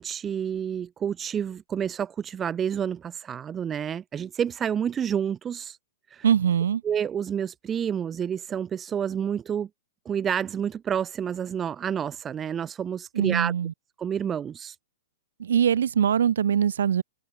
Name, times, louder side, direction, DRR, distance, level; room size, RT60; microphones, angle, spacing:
voice 1, 0.0-5.8 6.1-6.2 6.8-9.7 10.0-13.5 14.0-14.7, right 8 dB, 20° right, 0.8 m, -29 dB
voice 2, 6.2-6.8 13.1-13.7 15.4-17.0, right 8 dB, 75° right, 2.0 m, -22 dB
hypercardioid pair, 130°, 0 cm